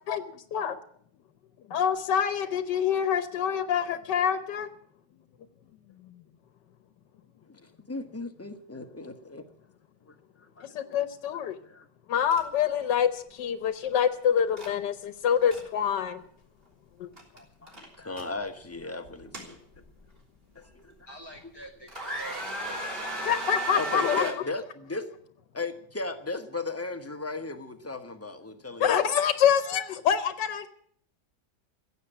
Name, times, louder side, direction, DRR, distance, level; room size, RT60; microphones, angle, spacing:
voice 1, 0.1-0.7 1.7-4.7 10.6-11.6 12.1-16.2 17.0-17.1 23.2-24.3 28.8-30.7, left 8 dB, 85° left, 11 dB, 1.5 m, -26 dB
voice 2, 7.5-9.5 10.1-11.0 11.3-11.9 17.3-19.6 20.5-21.1 23.7-25.1 25.5-29.2, left 3 dB, 10° left, 6 dB, 0.9 m, -37 dB
sound 1, 12.3-12.4 12.7-12.9 14.6-14.7 15.2-15.6 17.2-17.4 17.7-18.3 19.0-20.0 20.6-20.7 21.3-21.6 21.9-24.3, right 2 dB, 30° right, 3.6 m, -35 dB
voice 3, 21.1-23.7, right 2 dB, 15° right, 1 dB, 1.5 m, -47 dB
15.0 x 8.2 x 9.9 m, 0.65 s
omnidirectional pair, 1.8 m